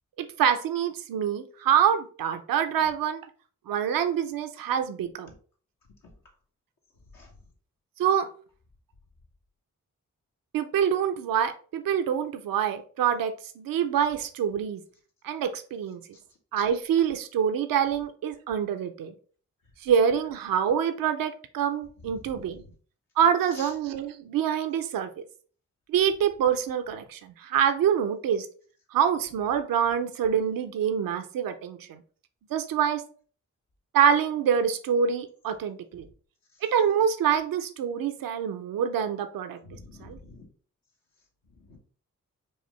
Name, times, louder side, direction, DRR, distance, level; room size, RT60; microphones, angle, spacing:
voice 1, 0.2-3.3 3.7-5.3 8.0-8.3 10.5-14.8 15.2-16.0 16.5-19.1 19.8-22.6 23.2-25.1 25.9-28.5 28.9-32.0 32.5-33.0 33.9-36.1 36.6-39.6 40.0-40.2, right 8 dB, 90° right, 8 dB, 0.5 m, -26 dB
voice 2, 22.0-22.5 23.5-23.7 39.6-40.5 41.6-41.8, left 2 dB, 85° left, -1 dB, 1.2 m, -47 dB
4.8 x 2.5 x 3.1 m, 0.42 s
cardioid pair, 40°, 33 cm